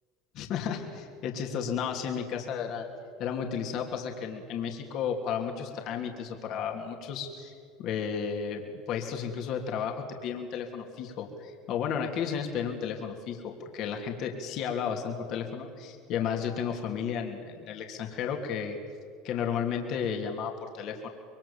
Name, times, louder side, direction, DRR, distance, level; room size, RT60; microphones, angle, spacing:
voice 1, 0.3-2.9 3.2-7.5 7.8-8.6 8.9-18.8 19.2-21.1, left 7 dB, 55° left, 2 dB, 3.1 m, -33 dB
26.0 x 23.0 x 7.3 m, 2.2 s
hypercardioid pair, 80°, 0 cm